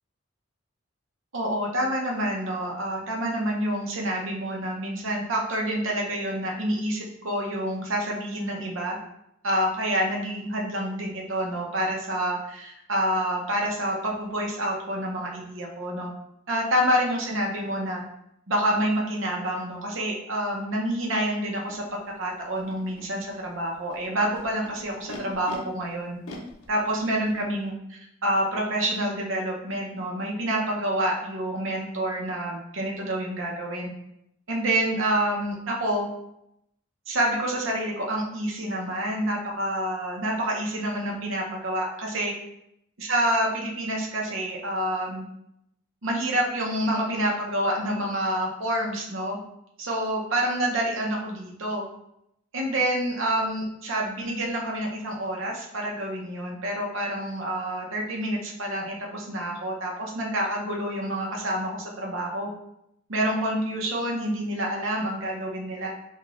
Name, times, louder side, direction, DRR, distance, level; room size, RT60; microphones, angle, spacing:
voice 1, 1.3-9.0 9.4-16.1 16.5-18.0 18.5-26.2 26.7-33.9 34.5-36.1 37.1-42.3 43.0-45.2 46.0-49.4 49.8-51.8 52.5-62.5 63.1-65.9, right 1 dB, 70° right, -1 dB, 0.7 m, -28 dB
Animal, 21.7-21.8 22.5-23.1 23.9-25.6 26.2-27.5, left 2 dB, 90° left, 0.6 m, -43 dB
4.9 x 2.4 x 2.4 m, 0.80 s
head